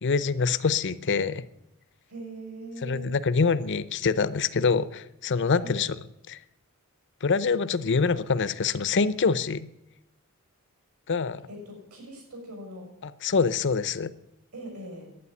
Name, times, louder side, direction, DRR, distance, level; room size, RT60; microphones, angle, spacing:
voice 1, 0.0-1.5 2.8-6.0 6.3-6.4 7.2-9.7 11.1-11.4 13.0-14.1, left 5 dB, 55° left, 16 dB, 0.6 m, -25 dB
voice 2, 2.1-3.2 5.6-5.9 11.5-12.9 14.5-15.1, right 1 dB, 80° right, 1 dB, 6.6 m, -41 dB
11.0 x 9.4 x 9.7 m, 0.86 s
head